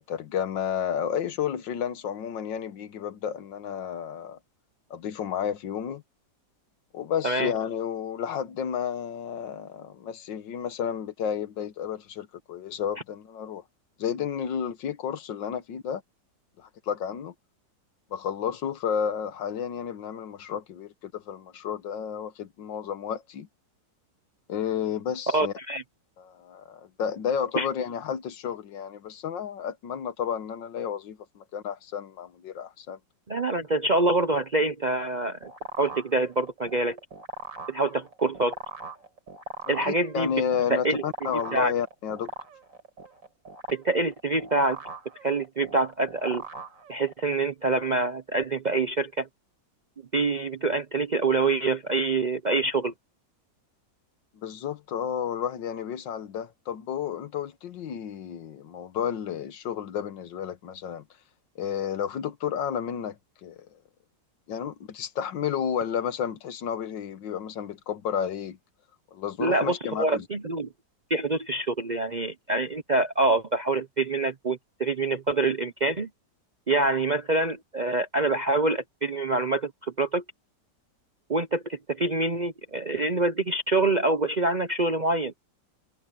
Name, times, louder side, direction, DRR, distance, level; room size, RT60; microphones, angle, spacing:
voice 1, 0.0-4.4 4.9-6.0 6.9-13.6 14.0-16.0 16.6-17.3 18.1-23.5 24.5-25.5 26.2-33.0 39.7-42.3 54.4-61.0 61.6-63.2 63.4-63.7 64.5-68.6 69.1-70.3, left 8 dB, 85° left, 1.8 m, -31 dB
voice 2, 25.3-25.8 27.5-27.7 33.3-35.5 35.8-37.0 37.7-38.6 39.7-40.3 40.7-41.0 41.3-41.7 43.7-44.8 45.2-46.4 46.9-49.3 50.1-52.9 69.4-70.7 71.1-76.1 76.7-80.2 81.3-85.3, right 2 dB, 45° right, 0.6 m, -26 dB
sound 1, 35.0-47.3, right 1 dB, 85° right, 5.6 m, -41 dB
omnidirectional pair, 2.0 m